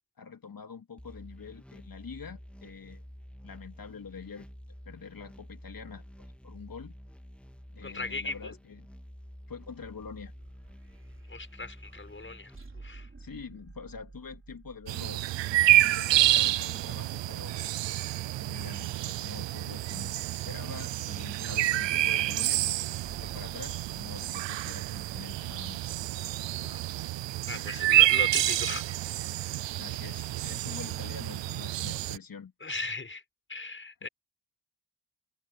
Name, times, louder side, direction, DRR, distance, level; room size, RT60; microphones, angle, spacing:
voice 1, 0.2-3.1 3.4-4.5 4.8-6.9 7.7-8.9 9.5-10.3 13.2-15.2 15.6-17.5 18.3-26.0 29.8-32.5, left 6 dB, 50° left, 2.9 m, -45 dB
sound 1, 1.0-12.6, equal, 5° left, 3.0 m, -49 dB
voice 2, 7.8-8.5 11.3-13.1 26.5-26.8 27.5-29.0 29.4-29.6 32.6-33.2 33.5-34.1, left 3 dB, 25° left, 6.1 m, -38 dB
sound 2, 9.5-16.8 23.0-27.1, right 3 dB, 30° right, 4.1 m, -53 dB
sound 3, 14.9-32.2, right 15 dB, 85° right, 0.7 m, -28 dB
cardioid pair, 65°, 43 cm